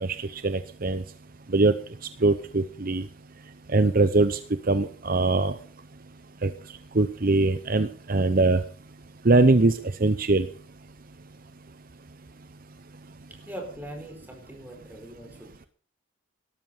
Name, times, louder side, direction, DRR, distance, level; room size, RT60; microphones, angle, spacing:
voice 1, 0.0-1.0 1.5-1.7 2.2-3.0 3.7-4.4 4.7-5.5 6.4-6.5 6.9-8.6 9.2-10.5, right 2 dB, 45° right, 12 dB, 0.8 m, -22 dB
voice 2, 13.5-15.7, right 1 dB, 10° right, 4 dB, 4.8 m, -41 dB
18.0 x 13.0 x 5.6 m, 0.43 s
head